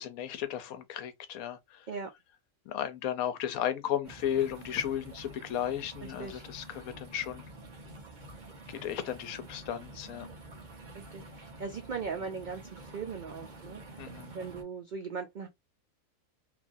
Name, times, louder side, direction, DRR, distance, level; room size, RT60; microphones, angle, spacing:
voice 1, 0.0-1.9 2.7-7.4 8.7-10.3 14.0-14.3, left 10 dB, 85° left, 1.1 m, -34 dB
sound 1, 4.0-14.6, right 2 dB, 40° right, 0.8 m, -48 dB
voice 2, 6.0-6.4 10.9-13.8 14.3-15.5, right 5 dB, 90° right, 0.4 m, -39 dB
2.9 x 2.5 x 2.5 m
omnidirectional pair, 1.4 m